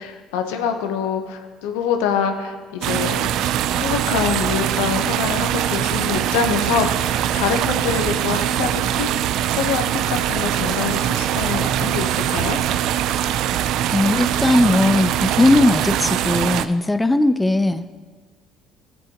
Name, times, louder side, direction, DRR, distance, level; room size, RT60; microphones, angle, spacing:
voice 1, 0.0-3.3 3.7-9.1 9.5-12.6, left 7 dB, 85° left, 5 dB, 0.9 m, -25 dB
sound 1, 2.8-16.6, right 11 dB, 70° right, 0.3 m, -22 dB
voice 2, 13.9-17.9, left 2 dB, 10° left, 11 dB, 0.4 m, -18 dB
14.0 x 7.7 x 2.9 m, 1.4 s
supercardioid pair, 80°, 0 cm